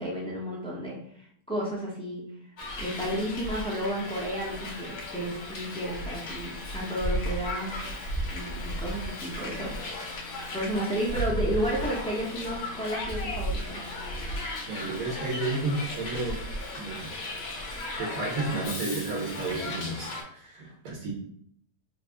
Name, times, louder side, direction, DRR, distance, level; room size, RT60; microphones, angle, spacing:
voice 1, 0.0-2.2 2.8-7.7 8.3-9.8 10.5-13.8, right 1 dB, 5° left, -5 dB, 0.4 m, -32 dB
Hiss, 2.6-20.2, left 1 dB, 55° left, 0.8 m, -35 dB
voice 2, 14.7-16.4 16.8-17.1 18.0-21.1, right 3 dB, 65° right, -3 dB, 1.2 m, -32 dB
3.4 x 2.0 x 3.4 m, 0.65 s
omnidirectional pair, 1.7 m